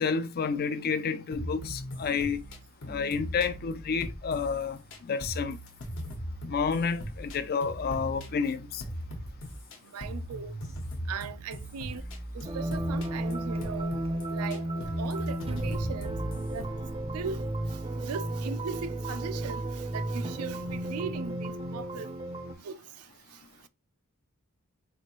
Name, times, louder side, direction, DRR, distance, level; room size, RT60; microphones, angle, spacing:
voice 1, 0.0-2.4 2.9-5.6 6.4-8.8, left 5 dB, 45° left, 0.4 m, -30 dB
sound 1, 1.3-9.8 10.0-16.6, equal, 60° left, 1.0 m, -39 dB
voice 2, 9.9-10.5 11.1-12.0 12.3-14.0 14.3-16.2 16.5-16.7 17.1-17.4 18.0-19.6 19.9-22.1 22.6-22.8, right 6 dB, 85° right, 0.4 m, -38 dB
sound 2, 12.4-22.5, right 1 dB, 25° right, 0.5 m, -33 dB
4.4 x 2.5 x 2.9 m
head